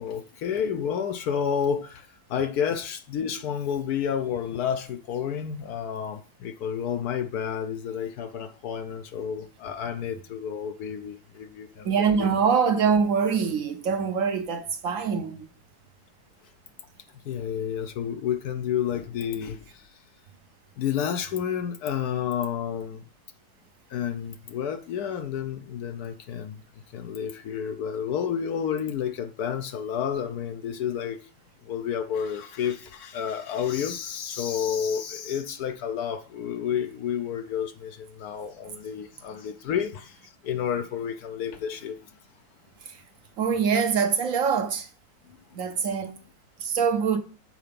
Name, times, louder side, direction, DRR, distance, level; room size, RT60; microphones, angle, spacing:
voice 1, 0.0-12.3 17.2-20.0 20.8-23.0 23.9-26.6 26.9-31.2 31.6-42.0 45.3-45.4, left 8 dB, 70° left, 1.1 m, -30 dB
voice 2, 11.8-15.5 42.8-43.0 43.4-44.9 45.5-46.2 46.6-47.2, right 6 dB, 60° right, 1.0 m, -24 dB
7.8 x 4.3 x 5.1 m
omnidirectional pair, 1.8 m